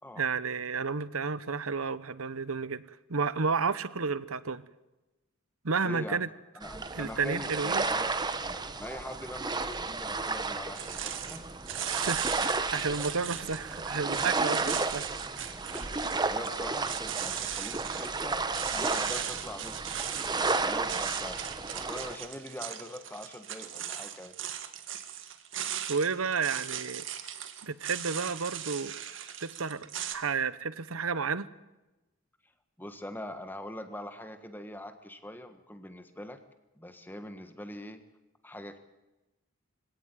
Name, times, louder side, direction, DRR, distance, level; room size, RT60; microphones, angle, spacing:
voice 1, 0.2-4.6 5.6-6.3 7.0-7.8 11.9-15.0 25.9-27.0 27.6-28.9 29.4-31.5, right 5 dB, 90° right, 16 dB, 1.0 m, -31 dB
voice 2, 5.8-6.2 6.5-11.6 15.7-16.0 16.3-18.4 18.7-21.4 21.7-24.3 32.8-36.4 36.7-38.0 38.4-38.8, left 1 dB, 10° left, 8 dB, 1.5 m, -43 dB
sound 1, 6.6-22.2, right 3 dB, 20° right, 1.0 m, -33 dB
sound 2, 10.7-30.1, right 10 dB, 65° right, 1.9 m, -38 dB
24.5 x 17.0 x 9.2 m, 1.0 s
head